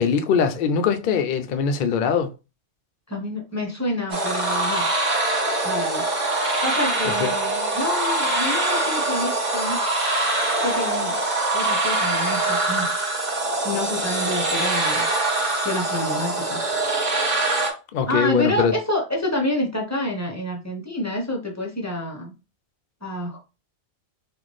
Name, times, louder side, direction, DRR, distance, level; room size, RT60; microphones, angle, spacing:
voice 1, 0.0-2.3 7.2-7.3 17.9-18.7, left 6 dB, 60° left, 0.6 m, -21 dB
voice 2, 3.1-4.8 5.6-6.0 6.6-9.8 10.6-11.2 11.5-12.9 13.6-15.0 15.6-16.6 18.1-22.3 23.0-23.5, left 1 dB, 15° left, 0.8 m, -28 dB
sound 1, 4.1-17.7, right 2 dB, 40° right, 1.0 m, -23 dB
3.9 x 2.4 x 3.1 m
omnidirectional pair, 1.2 m